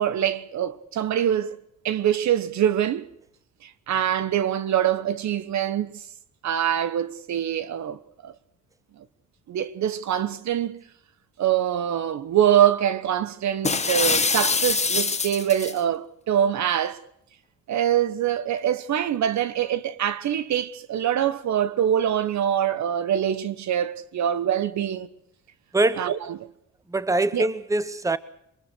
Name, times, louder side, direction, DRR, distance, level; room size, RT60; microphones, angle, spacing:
voice 1, 0.0-1.6 1.8-3.1 3.6-6.0 6.4-8.3 9.5-10.8 11.4-17.0 17.7-25.1 26.0-26.5 27.3-27.5, right 10 dB, 65° right, 1.3 m, -24 dB
sound 1, 13.6-15.8, left 4 dB, 20° left, 1.4 m, -24 dB
voice 2, 25.7-26.1 26.9-28.2, right 2 dB, 10° right, 1.1 m, -23 dB
24.0 x 21.5 x 6.3 m
cardioid pair, 90°, 30 cm